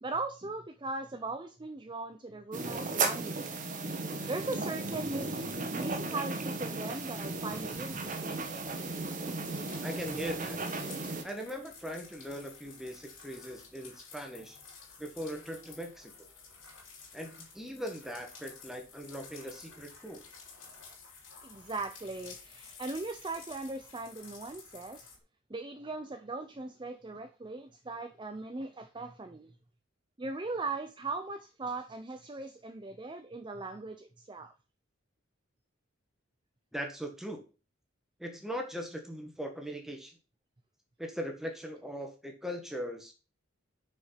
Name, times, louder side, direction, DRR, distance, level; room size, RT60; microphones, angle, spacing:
voice 1, 0.0-3.5 4.3-5.4 5.7-8.3 9.3-9.5 21.4-25.1 25.5-29.5 30.2-34.5, right 3 dB, 25° right, 7 dB, 0.5 m, -39 dB
sound 1, 2.5-11.2, right 3 dB, 40° right, 1.2 m, -35 dB
sound 2, 7.9-25.2, left 5 dB, 70° left, 3.3 m, -52 dB
voice 2, 9.8-10.6 11.2-14.6 15.0-16.1 17.1-20.2 36.7-37.4 38.2-40.2 41.0-43.1, equal, ahead, 3 dB, 1.5 m, -40 dB
6.3 x 5.1 x 5.7 m, 0.32 s
head